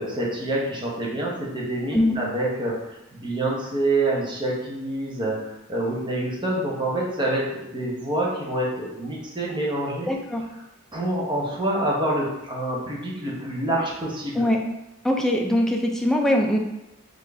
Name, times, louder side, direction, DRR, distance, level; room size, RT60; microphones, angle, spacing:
voice 1, 0.0-10.1 10.9-14.4, right 1 dB, 20° right, -3 dB, 0.7 m, -27 dB
voice 2, 10.1-10.5 14.4-14.6 15.0-16.6, left 1 dB, ahead, 1 dB, 0.4 m, -22 dB
3.6 x 2.5 x 3.3 m, 0.90 s
head